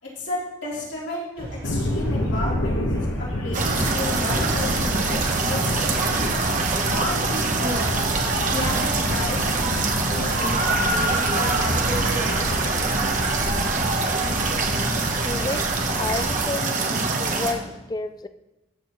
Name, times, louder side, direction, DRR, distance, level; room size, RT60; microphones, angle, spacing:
voice 1, 0.0-2.8 3.2-7.8 8.5-9.7 9.9-12.7, left 1 dB, 65° left, -6 dB, 3.3 m, -32 dB
sound 1, 1.4-16.3, equal, 85° right, 3.6 m, -36 dB
sound 2, 1.6-16.4, left 1 dB, 80° left, 1.2 m, -30 dB
sound 3, 3.5-17.5, right 3 dB, 40° right, 1.0 m, -24 dB
voice 2, 15.2-18.3, left 3 dB, 20° left, 12 dB, 0.3 m, -31 dB
14.0 x 6.7 x 3.1 m, 1.0 s
head